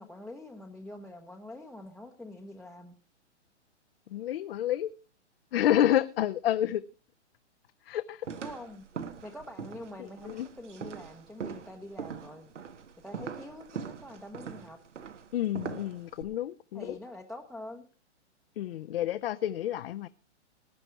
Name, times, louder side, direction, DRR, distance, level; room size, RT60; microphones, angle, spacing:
voice 1, 0.0-2.9 8.4-8.8 9.2-12.5 13.0-14.8 16.7-17.9, left 1 dB, ahead, 0.8 m, -45 dB
voice 2, 4.1-4.9 5.5-6.8 7.9-8.3 10.0-10.5 15.3-17.0 18.6-20.1, left 11 dB, 55° left, 0.7 m, -29 dB
sound 1, 8.2-16.2, right 6 dB, 85° right, 1.9 m, -42 dB
19.0 x 8.9 x 4.6 m
hypercardioid pair, 145°, 35 cm